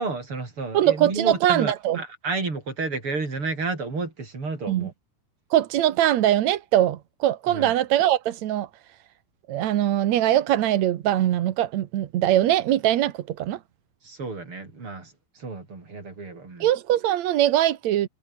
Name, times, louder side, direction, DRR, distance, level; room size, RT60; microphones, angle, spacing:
voice 1, 0.0-4.9 7.5-7.7 14.0-15.1 15.4-16.7, right 3 dB, 30° right, 6.2 m, -31 dB
voice 2, 0.7-2.0 4.7-4.9 5.5-8.7 9.5-13.6 16.6-18.1, right 12 dB, 70° right, 1.8 m, -22 dB
omnidirectional pair, 4.7 m